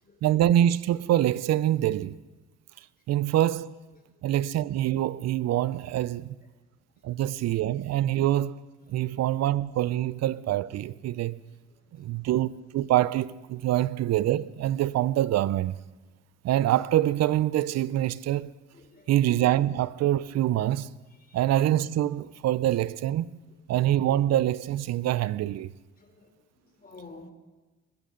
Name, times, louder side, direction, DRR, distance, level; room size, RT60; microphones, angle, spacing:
voice 1, 0.2-2.2 3.1-3.7 4.2-6.3 7.0-8.6 8.9-11.4 11.9-15.7 16.4-18.5 19.1-20.9 21.3-23.4 23.7-25.7, right 13 dB, 60° right, 0.6 m, -25 dB
voice 2, 11.7-12.2 18.7-19.1 21.2-21.4 26.0-27.3, left 3 dB, 30° left, 3.5 m, -51 dB
20.0 x 15.5 x 3.9 m
supercardioid pair, 85°, 30 cm